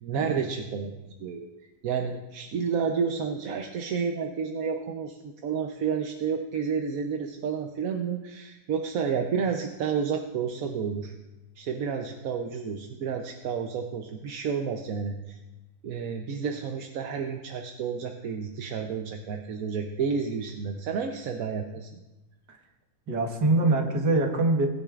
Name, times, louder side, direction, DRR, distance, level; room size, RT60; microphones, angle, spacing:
voice 1, 0.0-0.9 1.2-1.5 1.8-11.1 11.6-15.4 15.8-21.9, right 6 dB, 65° right, 4 dB, 1.1 m, -30 dB
voice 2, 23.1-24.7, right 2 dB, 80° right, 2 dB, 2.0 m, -24 dB
19.0 x 10.0 x 2.4 m, 1.0 s
omnidirectional pair, 1.8 m